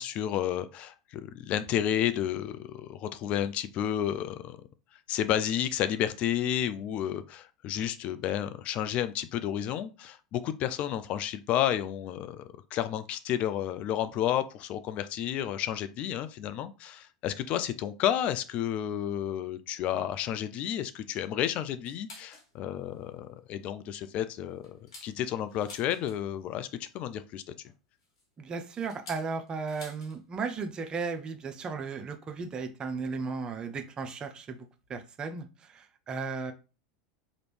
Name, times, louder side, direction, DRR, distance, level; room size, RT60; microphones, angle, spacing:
voice 1, 0.0-4.6 5.1-12.4 12.7-27.4, left 11 dB, 45° left, 0.3 m, -31 dB
sound 1, 21.8-22.5 22.9-23.0 23.4-23.7 24.2-26.4 27.6-30.2 30.5-30.6 30.9-31.2 32.1-32.2 33.1-33.2 34.1-34.2 34.6-34.7 34.8-35.0, left 2 dB, 70° left, 1.4 m, -51 dB
voice 2, 28.4-34.6 34.9-36.5, right 4 dB, 30° right, 0.5 m, -35 dB
3.0 x 2.5 x 3.3 m
hypercardioid pair, 85°, 3 cm